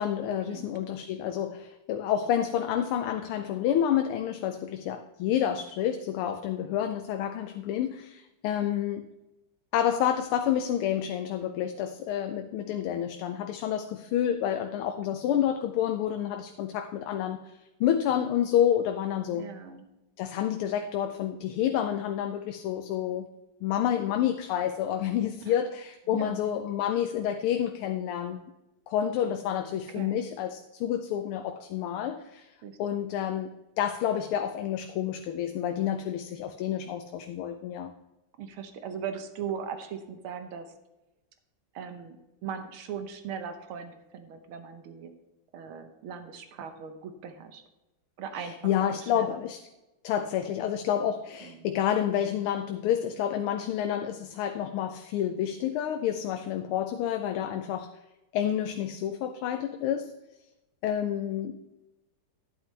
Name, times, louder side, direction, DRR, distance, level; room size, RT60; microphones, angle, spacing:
voice 1, 0.0-9.1 9.7-19.5 20.2-23.3 23.6-28.4 28.9-32.5 32.8-37.9 48.4-49.6 50.0-57.9 58.3-60.1 60.8-61.6, left 10 dB, 90° left, 7 dB, 1.5 m, -29 dB
voice 2, 19.3-19.9 25.5-25.6 26.1-26.5 30.0-30.3 32.6-33.0 38.4-40.7 41.7-42.2 42.4-45.1 45.5-47.6 48.2-48.5 48.8-49.4 51.4-51.7, right 7 dB, 80° right, 8 dB, 1.8 m, -39 dB
11.0 x 9.7 x 3.2 m, 0.99 s
omnidirectional pair, 2.3 m